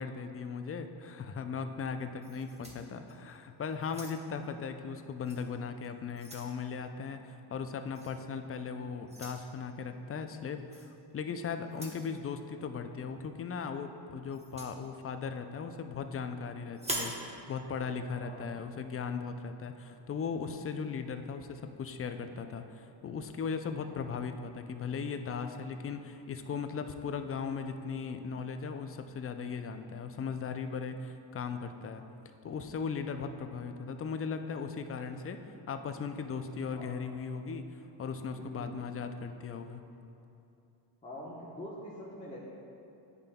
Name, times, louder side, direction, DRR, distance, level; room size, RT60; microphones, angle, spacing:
voice 1, 0.0-32.0 32.4-35.4 35.7-39.8, left 5 dB, 30° left, 8 dB, 0.4 m, -38 dB
sound 1, 2.2-3.4 3.8-4.4 5.2-5.4 5.8-6.6 8.0-8.2 9.1-9.4 10.7-10.9 11.7-12.1 14.3-14.8 16.7-17.2, right 1 dB, 15° right, 1.0 m, -41 dB
voice 2, 18.2-18.6 36.7-37.0 38.4-38.8 41.0-42.4, left 1 dB, 15° left, -6 dB, 1.0 m, -45 dB
9.7 x 5.3 x 2.2 m, 2.7 s
cardioid pair, 70°, 49 cm